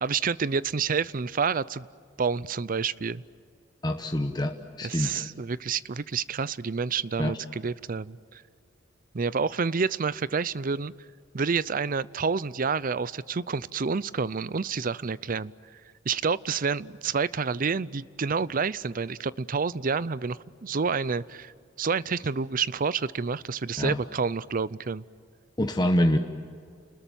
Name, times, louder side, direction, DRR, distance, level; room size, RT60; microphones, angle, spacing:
voice 1, 0.0-1.9 2.2-3.2 4.8-8.4 9.1-10.9 11.3-15.5 16.1-21.5 21.8-25.0, right 5 dB, 45° right, 19 dB, 0.6 m, -28 dB
voice 2, 3.8-5.3 7.2-7.3 23.8-24.0 25.6-26.2, left 1 dB, 20° left, 5 dB, 1.1 m, -26 dB
29.5 x 20.5 x 9.1 m, 2.3 s
head